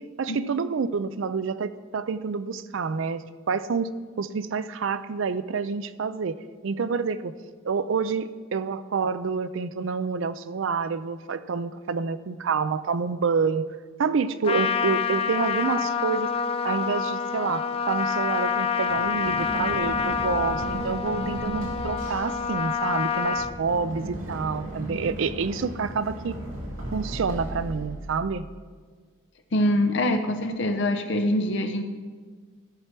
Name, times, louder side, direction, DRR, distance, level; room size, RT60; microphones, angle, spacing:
voice 1, 0.0-3.9 4.2-6.4 6.6-7.3 7.6-13.7 14.0-16.3 16.6-26.4 26.9-28.5, right 5 dB, 65° right, 14 dB, 0.4 m, -28 dB
Trumpet, 14.4-23.5, left 6 dB, 25° left, 0.3 m, -27 dB
Run, 18.9-28.6, right 1 dB, 90° right, 2.2 m, -36 dB
voice 2, 29.5-31.8, left 1 dB, 60° left, 7 dB, 0.6 m, -24 dB
14.0 x 5.9 x 4.4 m, 1.5 s
head